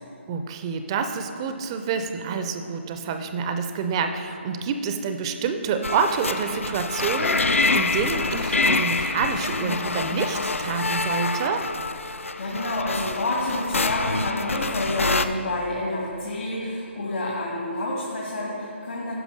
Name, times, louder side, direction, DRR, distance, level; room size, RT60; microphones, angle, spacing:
voice 1, 0.3-11.7, right 5 dB, 25° right, 7 dB, 0.4 m, -27 dB
sound 1, 5.8-15.3, left 3 dB, 90° left, 0.5 m, -26 dB
voice 2, 12.4-19.1, left 1 dB, 70° left, -5 dB, 2.0 m, -28 dB
10.0 x 5.8 x 5.3 m, 3.0 s
figure-of-eight pair, 155°, 7 cm